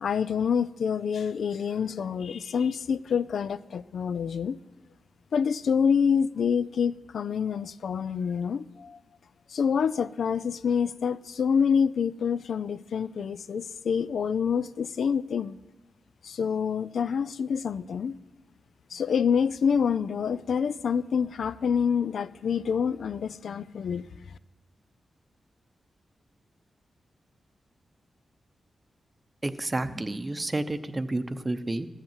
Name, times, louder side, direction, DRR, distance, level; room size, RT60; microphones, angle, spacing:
voice 1, 0.0-4.6 5.3-9.0 9.5-15.6 16.2-18.2 18.9-24.1, left 6 dB, 80° left, 0.3 m, -27 dB
voice 2, 29.4-31.9, right 2 dB, 25° right, 0.7 m, -30 dB
13.5 x 8.0 x 7.3 m
cardioid pair, 80°, 0 cm